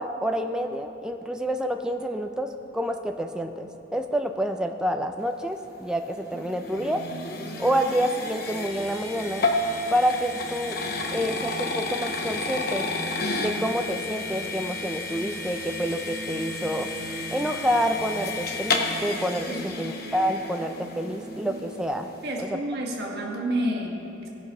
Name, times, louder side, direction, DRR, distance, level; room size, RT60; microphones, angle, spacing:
voice 1, 0.0-7.0 7.6-9.5 9.9-10.8 11.1-12.9 13.4-16.9 17.3-22.1 22.4-22.5, equal, 5° right, 5 dB, 0.4 m, -28 dB
sound 1, 5.9-21.1, left 3 dB, 50° left, 1.0 m, -32 dB
sound 2, 6.3-21.8, right 2 dB, 20° right, 1.2 m, -41 dB
voice 2, 19.5-20.1 22.2-24.3, right 1 dB, 55° right, -1 dB, 1.6 m, -30 dB
17.0 x 6.0 x 5.5 m, 2.8 s
head